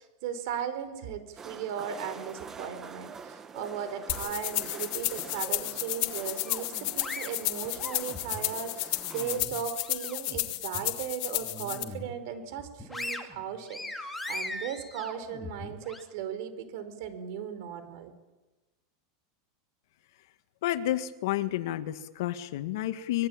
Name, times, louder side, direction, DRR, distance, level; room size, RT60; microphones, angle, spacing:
voice 1, 0.0-18.1, right 8 dB, 60° right, 10 dB, 5.0 m, -37 dB
sound 1, 1.4-9.4, right 5 dB, 20° right, 1.4 m, -46 dB
sound 2, 4.1-11.8, left 18 dB, 50° left, 2.5 m, -32 dB
sound 3, 6.4-8.5 8.9-10.4 10.7-10.9 11.4-12.2 12.6-16.0, left 1 dB, 5° left, 2.5 m, -40 dB
voice 2, 20.6-23.3, left 14 dB, 70° left, 9 dB, 1.9 m, -30 dB
25.5 x 22.5 x 9.0 m, 1.1 s
supercardioid pair, 150°, 2 cm